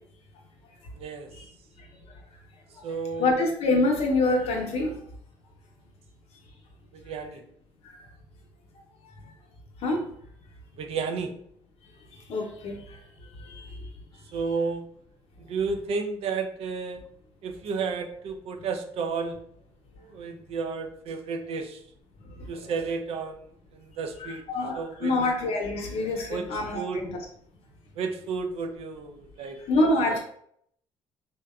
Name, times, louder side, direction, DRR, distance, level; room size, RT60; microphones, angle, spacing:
voice 1, 0.9-1.3 2.8-3.3 6.9-7.4 10.8-11.3 14.3-14.8 15.5-17.0 17.4-19.4 20.0-21.8 22.5-23.4 23.7-24.4 24.7-25.1 26.3-26.5 26.7-27.0 28.0-29.6 30.1-30.2, right 5 dB, 60° right, 5 dB, 0.4 m, -32 dB
voice 2, 3.2-4.9 9.8-10.1 12.3-12.7 24.2-27.1 29.7-30.2, left 2 dB, 65° left, 2 dB, 0.7 m, -25 dB
2.8 x 2.1 x 2.3 m, 0.67 s
supercardioid pair, 65°, 11 cm